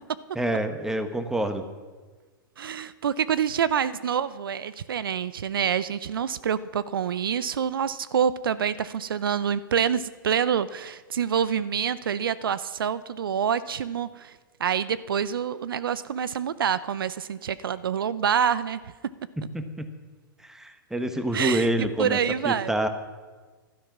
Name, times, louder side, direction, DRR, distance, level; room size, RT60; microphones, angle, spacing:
voice 1, 0.3-1.6 19.4-19.9 20.4-22.2 22.4-22.9, right 1 dB, 5° right, 8 dB, 1.3 m, -27 dB
voice 2, 2.6-18.8 21.3-22.7, right 8 dB, 80° right, 17 dB, 0.6 m, -27 dB
15.0 x 12.0 x 6.0 m, 1.4 s
hypercardioid pair, 110°, 12 cm